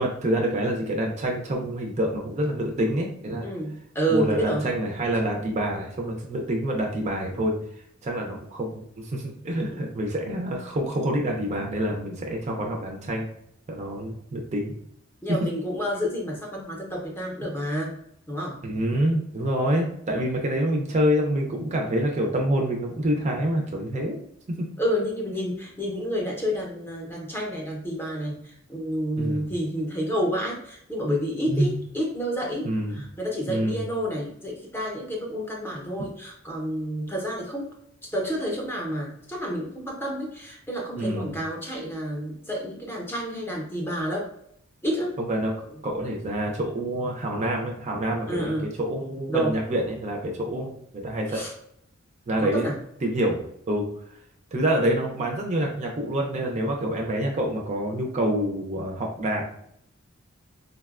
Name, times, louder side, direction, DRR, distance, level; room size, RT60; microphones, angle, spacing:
voice 1, 0.0-3.5 4.1-7.6 8.0-13.3 13.7-14.7 18.6-24.2 24.5-24.7 29.2-29.5 31.5-31.8 32.6-33.0 33.5-33.8 41.0-41.3 45.2-45.5 45.8-51.5 52.3-52.7 53.0-53.4 53.7-53.9 54.5-59.4, right 1 dB, 35° right, 1 dB, 0.4 m, -27 dB
voice 2, 3.4-4.6 9.7-9.8 15.2-18.0 18.3-18.6 24.8-37.7 38.0-44.3 44.8-45.1 48.3-48.7 49.3-49.5 51.3-51.5 52.4-52.8, equal, 10° left, -2 dB, 0.6 m, -29 dB
3.8 x 2.1 x 2.4 m, 0.71 s
head